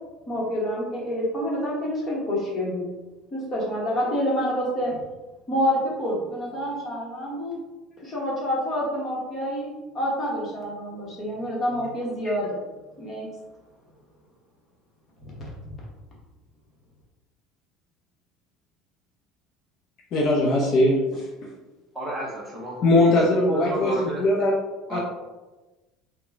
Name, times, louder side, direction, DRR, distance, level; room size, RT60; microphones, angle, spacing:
voice 1, 0.3-2.8 3.3-5.0 5.5-7.6 8.0-9.7 9.9-12.6 13.0-13.3, equal, 20° left, -5 dB, 1.0 m, -27 dB
voice 2, 20.1-21.5 22.8-24.5 24.9-25.0, left 1 dB, 40° left, -3 dB, 0.5 m, -21 dB
voice 3, 21.9-22.8 23.0-23.2 23.5-24.2 24.9-25.0, equal, 10° right, -4 dB, 0.7 m, -32 dB
3.8 x 2.1 x 3.4 m, 1.1 s
cardioid pair, 175°, 0 cm